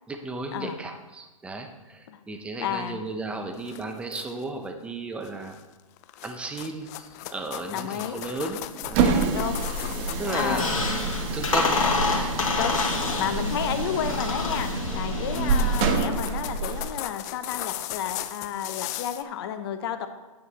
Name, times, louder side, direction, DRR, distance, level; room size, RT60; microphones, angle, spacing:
voice 1, 0.1-5.6 6.2-9.2 9.8-11.8 12.2-12.4 15.3-15.7, right 2 dB, 5° right, 5 dB, 0.6 m, -34 dB
voice 2, 2.6-3.0 7.7-8.2 9.3-9.7 10.3-10.7 12.6-20.1, left 9 dB, 45° left, 9 dB, 0.9 m, -31 dB
sound 1, 3.5-4.6 5.2-5.6 6.0-11.1 13.1-13.3 13.7-14.0 14.8-14.9 15.1-19.2, left 14 dB, 30° left, 0.4 m, -38 dB
sound 2, 8.8-16.9, right 4 dB, 30° right, 1.0 m, -28 dB
Squeak, 10.1-15.9, left 3 dB, 70° left, 1.8 m, -28 dB
9.1 x 8.4 x 4.1 m, 1.2 s
hypercardioid pair, 140°, 18 cm